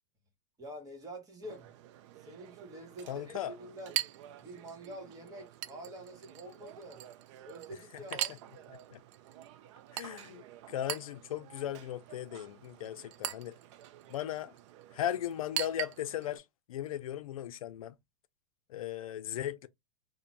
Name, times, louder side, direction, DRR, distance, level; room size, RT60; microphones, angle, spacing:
voice 1, 0.6-1.7 2.2-4.0 4.4-7.0 7.4-8.4, right 1 dB, 20° right, 1.1 m, -47 dB
Chink clink, 1.4-16.4, right 13 dB, 60° right, 0.4 m, -43 dB
voice 2, 3.1-3.5 7.9-8.0 8.9-9.0 9.9-13.6 14.1-14.5 14.9-18.0 18.7-19.7, left 11 dB, 90° left, 0.4 m, -37 dB
2.5 x 2.1 x 3.1 m
supercardioid pair, 130°, 17 cm